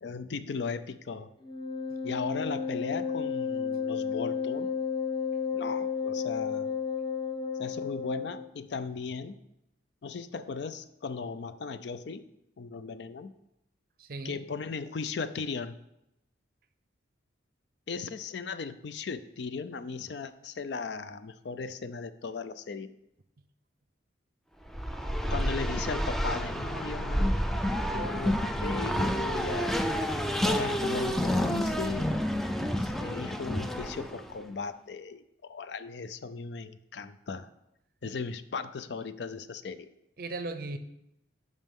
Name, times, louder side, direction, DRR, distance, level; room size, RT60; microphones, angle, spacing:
voice 1, 0.0-1.3 2.0-4.7 5.5-6.7 7.6-9.4 10.0-12.2 12.6-13.3 14.2-15.7 17.9-22.9 25.3-27.3 27.8-29.8 30.4-32.1 32.6-37.5 38.0-39.9, left 4 dB, 65° left, 0.4 m, -37 dB
Wind instrument woodwind instrument, 1.4-8.5, left 6 dB, 25° left, 0.8 m, -32 dB
voice 2, 14.0-14.4 38.0-38.1 40.2-40.8, right 2 dB, 50° right, 0.5 m, -37 dB
Race car auto racing, 24.7-34.3, equal, ahead, 0.3 m, -29 dB
11.0 x 5.4 x 3.6 m
head